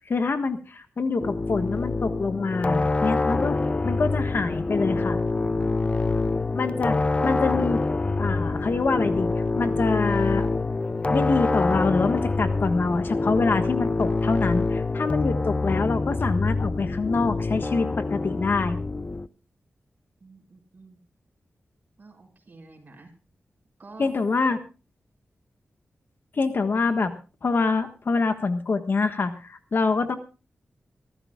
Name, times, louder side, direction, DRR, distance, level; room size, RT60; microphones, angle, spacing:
voice 1, 0.0-3.6 3.8-5.2 6.5-7.8 8.1-10.5 11.1-18.8 24.0-24.6 26.3-27.1 27.4-30.2, left 4 dB, 55° left, 8 dB, 1.4 m, -25 dB
sound 1, 1.2-19.3, left 3 dB, 30° left, 0.6 m, -26 dB
voice 2, 20.2-21.0 22.0-23.1 23.8-24.1, right 3 dB, 40° right, 2 dB, 6.2 m, -49 dB
25.0 x 15.0 x 2.4 m, 0.33 s
wide cardioid pair, 115°, 4 cm